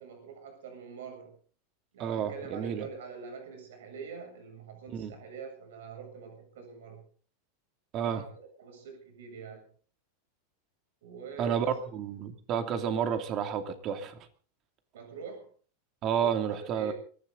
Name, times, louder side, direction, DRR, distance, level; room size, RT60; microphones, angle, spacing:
voice 1, 0.0-1.3 1.9-7.0 8.0-8.3 8.6-9.7 11.0-11.7 14.9-15.5 16.2-16.4 16.7-16.9, right 6 dB, 85° right, 4 dB, 7.5 m, -44 dB
voice 2, 2.0-2.9 4.9-5.1 7.9-8.2 11.4-14.2 16.0-16.9, right 8 dB, 30° right, 8 dB, 2.8 m, -30 dB
23.5 x 15.0 x 4.0 m, 0.43 s
supercardioid pair, 155°, 0 cm